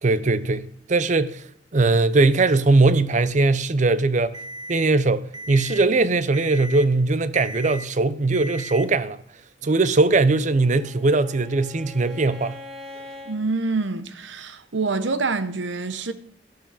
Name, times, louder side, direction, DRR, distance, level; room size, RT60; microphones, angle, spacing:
voice 1, 0.0-1.4 1.7-4.4 4.7-9.2 9.6-12.6, right 3 dB, 40° right, 0.6 m, -20 dB
Alarm, 4.3-4.8 5.3-5.8 6.3-6.8 7.3-7.8 8.3-8.8, right 1 dB, 25° right, 1.0 m, -36 dB
Bowed string instrument, 10.2-13.4, left 2 dB, ahead, 1.9 m, -42 dB
voice 2, 13.2-16.1, right 3 dB, 85° right, 0.9 m, -26 dB
13.0 x 12.0 x 4.1 m
head